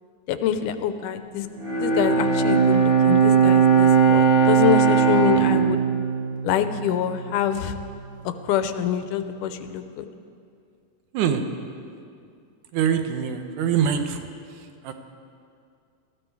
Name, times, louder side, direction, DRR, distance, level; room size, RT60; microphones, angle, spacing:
voice 1, 0.3-1.5 1.8-5.8 6.4-7.7 8.4-10.1, left 9 dB, 85° left, 10 dB, 2.2 m, -25 dB
Bowed string instrument, 1.6-7.1, right 6 dB, 45° right, 0.7 m, -19 dB
voice 2, 12.7-14.2 14.8-14.9, right 8 dB, 80° right, 7 dB, 2.3 m, -23 dB
18.5 x 13.5 x 4.7 m, 2.4 s
omnidirectional pair, 3.6 m